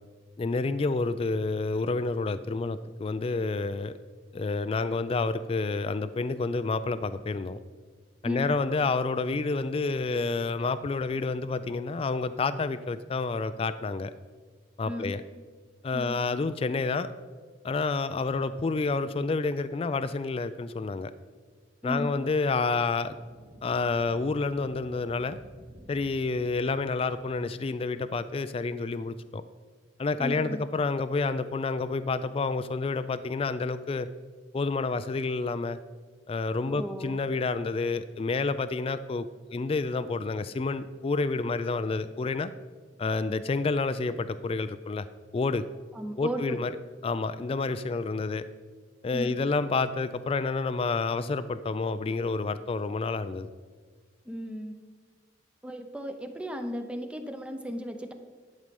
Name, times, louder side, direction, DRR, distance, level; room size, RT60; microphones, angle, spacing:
voice 1, 0.4-3.9 4.3-7.6 8.2-14.1 14.8-15.2 15.8-17.1 17.6-21.1 21.8-23.2 23.6-25.4 25.9-29.4 30.0-34.1 34.5-35.8 36.3-42.5 43.0-45.1 45.3-45.6 46.2-46.7 47.0-48.4 49.0-53.5, left 3 dB, 30° left, 12 dB, 0.3 m, -29 dB
voice 2, 8.2-8.6 14.9-15.2 15.9-16.2 21.8-22.2 30.2-30.6 36.7-37.2 45.9-46.6 49.1-49.4 54.3-54.8 55.6-58.1, equal, 5° right, 6 dB, 0.7 m, -35 dB
sound 1, 22.9-28.5, right 1 dB, 55° right, 2.3 m, -54 dB
11.5 x 6.6 x 5.3 m, 1.5 s
head